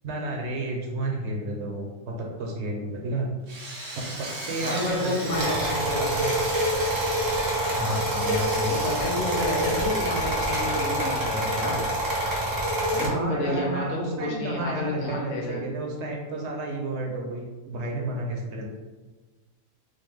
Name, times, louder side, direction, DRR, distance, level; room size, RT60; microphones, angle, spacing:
voice 1, 0.0-3.3 3.9-6.3 13.1-18.6, right 2 dB, 65° right, -1 dB, 0.8 m, -32 dB
Drill, 3.5-11.3, right 2 dB, 85° right, 1.1 m, -37 dB
voice 2, 4.6-5.8 7.7-11.8 12.9-15.6, left 1 dB, 85° left, -3 dB, 1.3 m, -30 dB
sound 1, 5.3-13.1, right 1 dB, 25° right, 0.5 m, -26 dB
3.8 x 2.0 x 3.1 m, 1.2 s
omnidirectional pair, 1.4 m